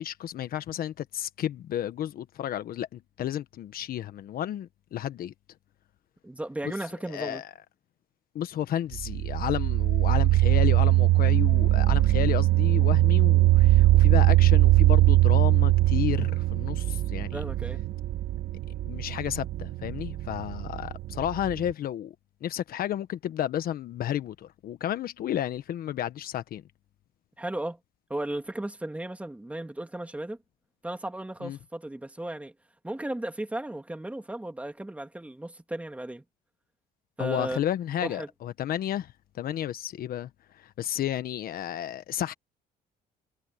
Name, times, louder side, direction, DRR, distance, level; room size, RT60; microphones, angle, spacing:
voice 1, 0.0-5.3 6.6-6.7 7.1-7.4 8.3-17.4 18.8-22.1 22.4-26.6 31.4-31.6 37.2-40.3 40.6-42.3, left 11 dB, 60° left, 1.3 m, -32 dB
voice 2, 6.2-7.4 17.3-17.8 27.4-27.8 28.1-30.4 30.8-32.5 32.8-36.2 37.2-37.6 38.0-38.3, right 1 dB, 10° right, 2.7 m, -35 dB
sound 1, 8.9-21.7, right 15 dB, 65° right, 1.4 m, -21 dB
cardioid pair, 110°, 17 cm